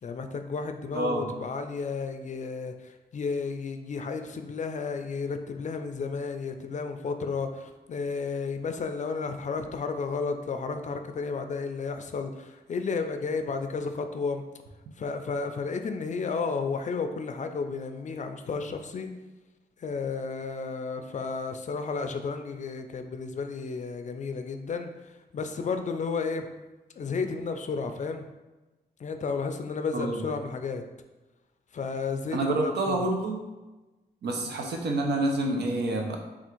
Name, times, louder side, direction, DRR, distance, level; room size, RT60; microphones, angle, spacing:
voice 1, 0.0-14.4 15.0-19.1 19.8-26.5 27.0-28.3 29.0-30.8 31.7-33.1, left 4 dB, 45° left, 7 dB, 0.4 m, -32 dB
voice 2, 0.9-1.3 29.9-30.2 32.3-33.4 34.2-36.2, right 2 dB, 85° right, 2 dB, 0.6 m, -27 dB
3.4 x 2.4 x 4.4 m, 1.1 s
wide cardioid pair, 100°, 17 cm